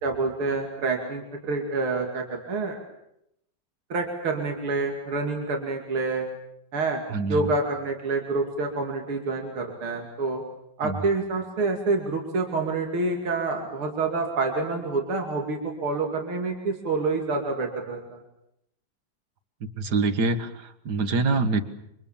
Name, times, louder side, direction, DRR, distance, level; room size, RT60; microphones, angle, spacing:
voice 1, 0.0-2.8 3.9-6.3 6.7-7.0 7.3-10.4 10.8-18.2, right 3 dB, 80° right, 2 dB, 3.5 m, -27 dB
voice 2, 7.1-7.4 10.8-11.0 19.8-21.6, right 3 dB, 50° right, 11 dB, 2.0 m, -25 dB
28.0 x 25.0 x 7.3 m, 0.80 s
omnidirectional pair, 2.3 m